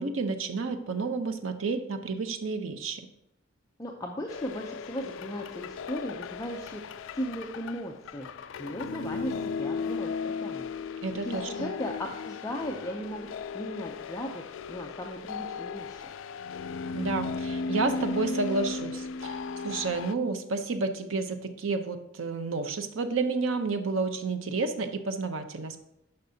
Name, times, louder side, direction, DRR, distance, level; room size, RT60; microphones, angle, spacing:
voice 1, 0.0-3.0 11.0-11.7 16.9-25.8, right 3 dB, 85° right, 8 dB, 0.7 m, -31 dB
voice 2, 3.8-6.8 7.1-10.7 11.2-13.3 13.5-16.0, equal, 15° left, 0 dB, 0.5 m, -37 dB
sound 1, 4.3-20.1, left 4 dB, 70° left, 0.3 m, -36 dB
10.5 x 5.4 x 2.7 m, 0.82 s
head